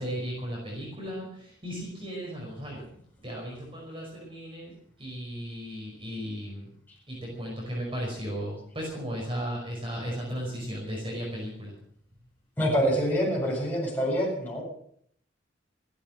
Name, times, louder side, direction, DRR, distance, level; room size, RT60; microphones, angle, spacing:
voice 1, 0.0-2.9 3.2-4.7 5.0-6.7 7.1-11.7, equal, 30° right, -3 dB, 5.2 m, -35 dB
voice 2, 12.6-14.6, equal, 10° left, -5 dB, 7.9 m, -26 dB
15.0 x 12.5 x 7.6 m, 0.66 s
head